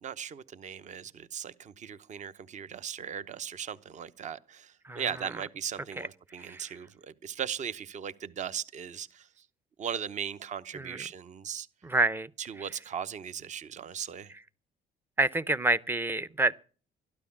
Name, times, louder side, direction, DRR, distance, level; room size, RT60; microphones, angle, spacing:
voice 1, 0.0-9.3 9.8-11.7 12.4-14.3, right 8 dB, 45° right, 0.9 m, -38 dB
voice 2, 11.8-12.3 15.2-16.6, right 2 dB, 15° right, 0.6 m, -28 dB
13.0 x 12.0 x 7.2 m
cardioid pair, 110°, 17 cm